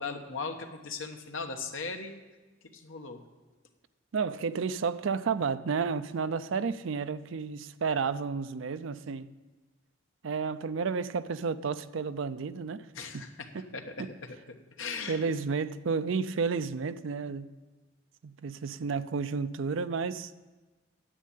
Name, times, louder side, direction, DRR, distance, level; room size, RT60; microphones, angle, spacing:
voice 1, 0.0-2.1 2.7-3.2 12.9-14.2 14.8-15.3, left 4 dB, 75° left, 1.2 m, -38 dB
voice 2, 4.1-9.3 10.2-12.9 13.1-13.3 13.5-13.6 14.0-14.1 15.1-17.5 18.2-20.3, right 5 dB, 70° right, 0.5 m, -31 dB
9.9 x 7.4 x 8.5 m
head